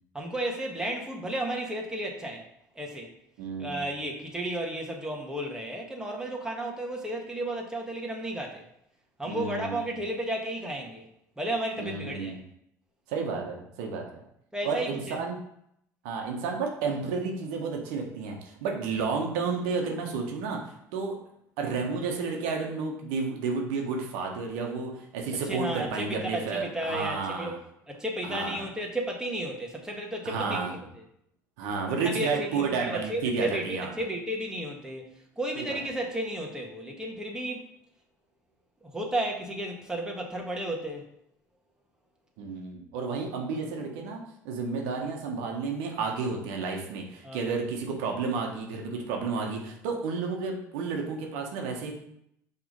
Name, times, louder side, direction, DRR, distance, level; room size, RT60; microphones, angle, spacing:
voice 1, 0.1-2.4 2.8-3.1 3.6-8.7 9.2-11.1 11.4-12.4 14.5-15.2 25.5-27.5 27.9-30.8 32.0-35.1 35.4-37.6 38.8-41.1 47.2-47.5, right 1 dB, 10° right, 0 dB, 1.8 m, -33 dB
voice 2, 3.4-3.8 9.2-9.8 11.8-12.4 13.1-14.1 14.6-15.4 16.0-21.2 21.6-27.6 28.2-28.6 30.2-30.7 31.6-33.9 35.5-35.8 42.4-51.9, right 4 dB, 75° right, 1 dB, 1.3 m, -31 dB
5.8 x 3.6 x 5.2 m, 0.75 s
hypercardioid pair, 65°, 9 cm